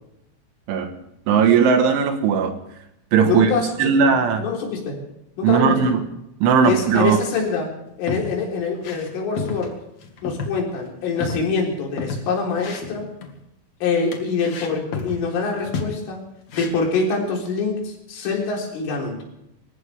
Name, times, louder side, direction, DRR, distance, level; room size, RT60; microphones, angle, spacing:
voice 1, 1.3-2.6 3.1-3.5 3.8-4.4 5.4-6.0 6.4-7.2, right 6 dB, 75° right, 6 dB, 3.8 m, -17 dB
voice 2, 3.2-5.0 5.4-5.9 6.6-9.8 10.2-13.1 13.8-16.3 16.5-19.2, left 4 dB, 75° left, -1 dB, 6.5 m, -25 dB
sound 1, 7.9-8.4 8.7-9.1 9.4-9.7 10.0-10.5 10.8-10.9 11.2-12.3 12.6-13.4 14.1-15.2 15.6-16.0 16.5-16.9, left 4 dB, 50° left, 2.2 m, -31 dB
27.5 x 15.0 x 3.5 m, 0.81 s
omnidirectional pair, 5.8 m